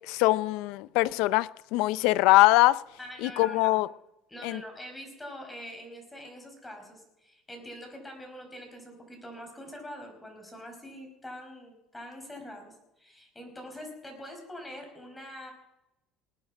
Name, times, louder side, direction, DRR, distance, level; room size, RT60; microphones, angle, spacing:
voice 1, 0.1-2.8 3.2-3.9 4.4-4.6, left 19 dB, 75° left, 0.5 m, -23 dB
voice 2, 3.0-3.8 4.3-15.5, equal, 10° left, 5.2 m, -44 dB
19.5 x 9.2 x 6.0 m
supercardioid pair, 100°, 0 cm